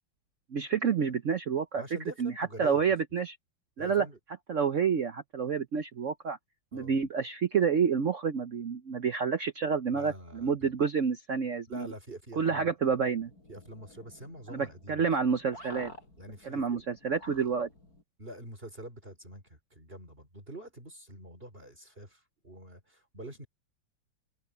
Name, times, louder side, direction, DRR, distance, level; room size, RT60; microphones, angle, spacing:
voice 1, 0.5-1.8 2.2-3.4 3.8-4.0 4.5-6.4 6.7-11.9 12.4-13.3 14.5-15.9 16.4-17.7, right 6 dB, 55° right, 1.0 m, -29 dB
voice 2, 1.7-2.9 3.8-4.2 6.7-6.9 9.9-10.7 11.7-12.7 13.5-15.1 16.2-16.8 18.2-23.5, right 1 dB, 30° right, 4.3 m, -45 dB
sound 1, 12.8-18.0, left 1 dB, 50° left, 6.4 m, -52 dB
omnidirectional pair, 2.0 m